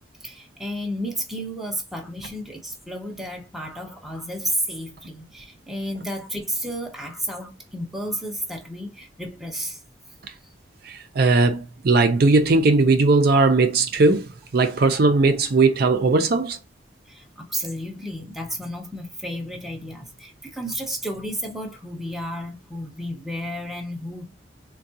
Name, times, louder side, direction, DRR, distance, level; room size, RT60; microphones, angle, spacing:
voice 1, 0.2-9.8 17.1-24.3, equal, ahead, 0.6 m, -32 dB
voice 2, 10.8-16.6, right 3 dB, 50° right, 0.4 m, -18 dB
3.5 x 2.2 x 2.7 m
head